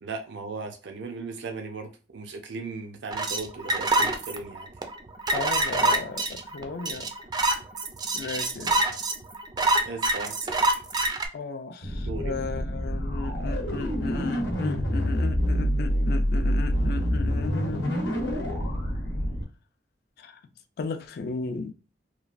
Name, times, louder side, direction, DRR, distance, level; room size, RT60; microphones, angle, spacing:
voice 1, 0.0-4.7 9.8-10.7 12.0-12.4, right 4 dB, 80° right, 0.5 m, -37 dB
sound 1, 3.1-11.3, right 2 dB, 25° right, 0.3 m, -25 dB
voice 2, 5.3-7.1 8.1-8.8 11.3-17.8 20.2-20.4 20.8-21.7, left 4 dB, 60° left, 0.4 m, -35 dB
sound 2, 11.8-19.4, equal, 80° left, 0.8 m, -27 dB
3.0 x 2.3 x 2.4 m
head